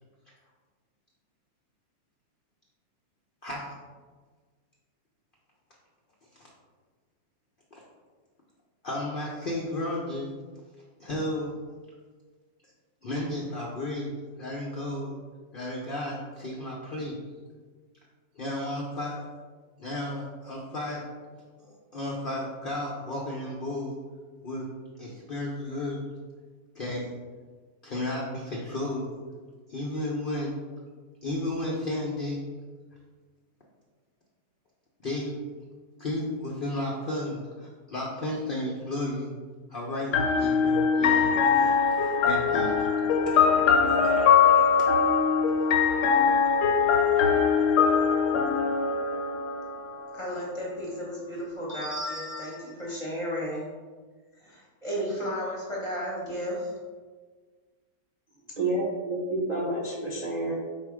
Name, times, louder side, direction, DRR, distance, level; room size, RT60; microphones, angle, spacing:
voice 1, 3.4-3.7 6.4-6.5 7.7-7.8 8.8-10.3 11.0-11.5 13.0-14.1 14.4-15.2 15.5-17.2 18.4-19.2 19.8-21.0 21.6-24.0 24.4-24.7 25.0-26.0 26.7-27.1 27.8-29.1 29.7-30.5 31.2-32.4 35.0-35.4 36.0-39.3 39.7-42.9 43.3-43.5 43.9-44.2 44.6-44.7, left 1 dB, 65° left, -3 dB, 0.5 m, -33 dB
sound 1, 40.1-49.9, left 6 dB, 80° left, 1.2 m, -22 dB
voice 2, 50.1-53.6 54.3-56.8, equal, 25° left, -5 dB, 0.7 m, -33 dB
voice 3, 58.6-60.5, right 2 dB, 40° right, -5 dB, 0.6 m, -29 dB
4.3 x 2.6 x 4.7 m, 1.5 s
omnidirectional pair, 1.8 m